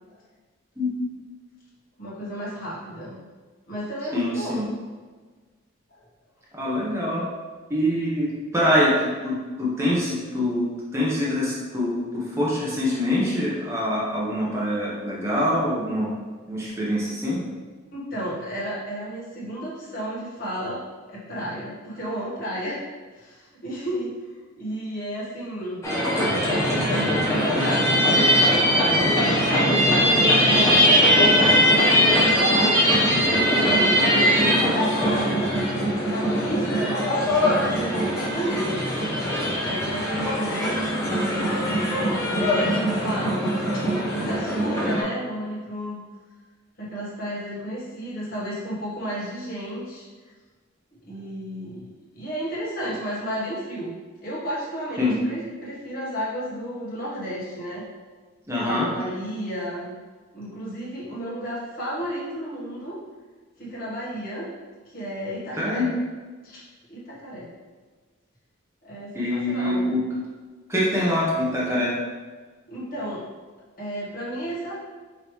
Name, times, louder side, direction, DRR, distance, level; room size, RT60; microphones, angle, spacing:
voice 1, 2.0-3.2 3.7-4.7 5.9-6.0 17.9-22.8 23.1-24.1 24.6-25.8 26.8-29.8 30.4-35.4 36.0-38.8 39.6-41.2 42.3-43.4 43.7-43.8 44.1-46.0 46.8-50.0 51.1-51.9 52.1-53.9 54.2-57.8 58.6-59.9 60.3-63.0 63.6-64.5 64.9-65.9 66.4-66.6 66.9-67.5 68.8-69.9 72.7-73.2 73.8-74.7, equal, 45° left, -7 dB, 1.4 m, -32 dB
voice 2, 4.1-4.6 6.5-7.2 7.7-10.6 10.9-16.1 16.5-17.4 55.0-55.2 58.5-58.9 65.5-65.9 69.1-70.0 70.7-71.9, left 1 dB, 15° right, -7 dB, 0.8 m, -24 dB
sound 1, 25.8-45.0, equal, 15° left, 1.1 m, -21 dB
5.1 x 2.8 x 3.1 m, 1.4 s
head